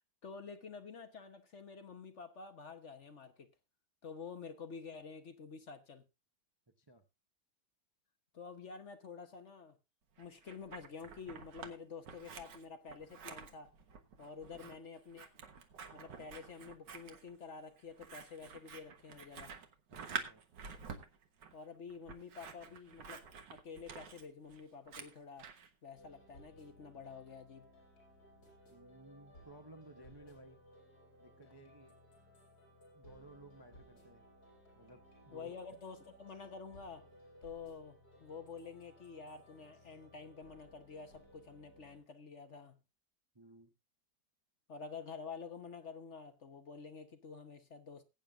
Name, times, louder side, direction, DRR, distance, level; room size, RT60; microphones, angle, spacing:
voice 1, 0.2-3.5 4.0-6.0 8.3-9.8 10.2-13.7 14.2-15.3 15.9-19.5 21.5-25.5 25.8-27.7 35.3-37.1 37.4-42.8 44.7-48.0, left 5 dB, 45° left, 1.2 m, -49 dB
Scissors, 10.2-11.7 12.0-25.7, right 6 dB, 85° right, 2.0 m, -49 dB
voice 2, 19.9-20.4 28.7-30.6 31.2-32.0 32.9-34.2 34.8-35.5 43.3-43.7, right 1 dB, 20° right, 0.7 m, -57 dB
sound 1, 25.9-42.0, equal, 60° left, 7.0 m, -61 dB
20.0 x 9.1 x 2.4 m
omnidirectional pair, 1.9 m